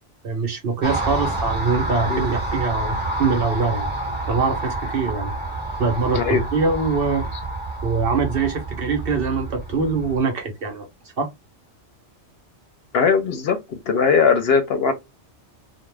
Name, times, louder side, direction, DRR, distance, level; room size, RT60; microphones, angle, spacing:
voice 1, 0.2-3.9 4.3-5.3 5.8-7.3 7.8-10.9 11.2-11.3, right 4 dB, 60° right, 0.8 m, -23 dB
Car passing by, 0.8-10.2, right 2 dB, 10° right, 0.8 m, -28 dB
voice 2, 12.9-13.6 13.9-14.9, left 5 dB, 65° left, 0.8 m, -19 dB
2.4 x 2.1 x 3.1 m
omnidirectional pair, 1.2 m